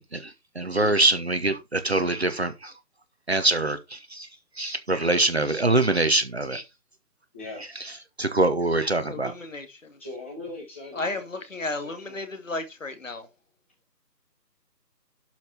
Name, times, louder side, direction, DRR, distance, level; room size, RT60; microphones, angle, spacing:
voice 1, 0.0-2.7 3.3-4.3 4.6-6.6 8.2-9.3, right 2 dB, 40° right, 1.2 m, -24 dB
voice 2, 0.6-0.9 7.3-7.6 10.0-12.2, left 3 dB, 10° left, 1.7 m, -41 dB
voice 3, 9.0-9.7 10.9-13.3, left 2 dB, 50° left, 2.3 m, -33 dB
12.0 x 5.7 x 4.6 m
figure-of-eight pair, 170°, 50 cm